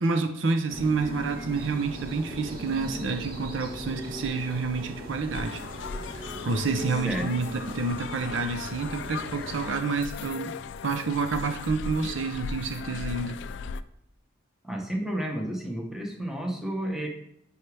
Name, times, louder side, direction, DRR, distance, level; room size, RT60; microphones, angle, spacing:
voice 1, 0.0-5.6 6.4-10.6 10.8-13.4, right 4 dB, 70° right, 6 dB, 0.7 m, -28 dB
sound 1, 0.7-9.8, equal, 50° right, 1.3 m, -39 dB
sound 2, 5.3-13.8, left 5 dB, 65° left, 0.3 m, -38 dB
voice 2, 14.6-17.1, right 1 dB, ahead, 1 dB, 1.0 m, -31 dB
9.9 x 4.8 x 3.3 m, 0.75 s
head